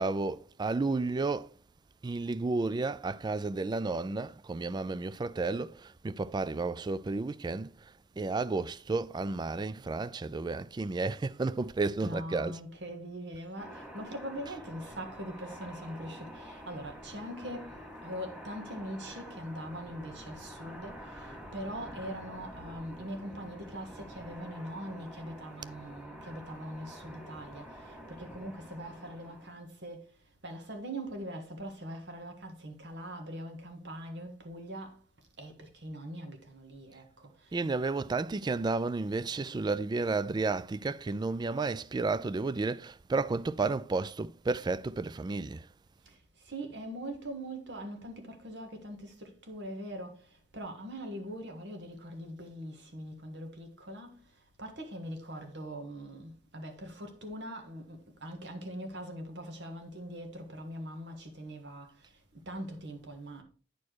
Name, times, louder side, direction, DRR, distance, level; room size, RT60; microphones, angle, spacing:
voice 1, 0.0-1.5 2.0-7.7 8.2-12.6 37.5-45.7, right 3 dB, 25° right, 0.3 m, -32 dB
voice 2, 12.0-30.1 30.4-35.0 35.4-37.5 46.0-46.2 46.4-50.2 50.5-54.2 54.6-61.9 62.4-63.4, equal, 70° right, 1.7 m, -42 dB
sound 1, 13.6-29.6, equal, 5° right, 2.2 m, -47 dB
9.6 x 4.5 x 4.6 m
head